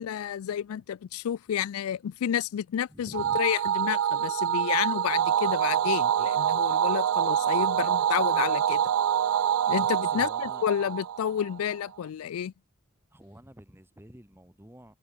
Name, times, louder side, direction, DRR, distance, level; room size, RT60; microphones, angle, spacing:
voice 1, 0.0-8.8 9.7-12.5, left 9 dB, 80° left, 0.3 m, -30 dB
voice 2, 2.9-3.4 10.0-10.7 13.1-14.9, equal, 10° right, 3.2 m, -49 dB
sound 1, 3.1-11.7, right 9 dB, 85° right, 0.3 m, -26 dB
head